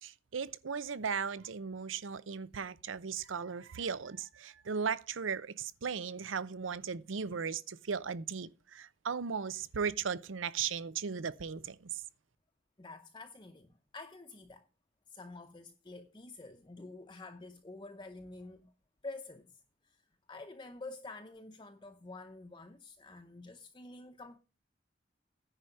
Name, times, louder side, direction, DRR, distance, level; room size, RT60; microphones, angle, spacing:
voice 1, 0.0-12.0, right 6 dB, 85° right, 0.6 m, -37 dB
voice 2, 12.8-14.7 15.1-18.7 19.0-19.5 19.9-20.0 20.3-24.4, left 2 dB, 25° left, 0.7 m, -48 dB
10.0 x 4.9 x 7.7 m
head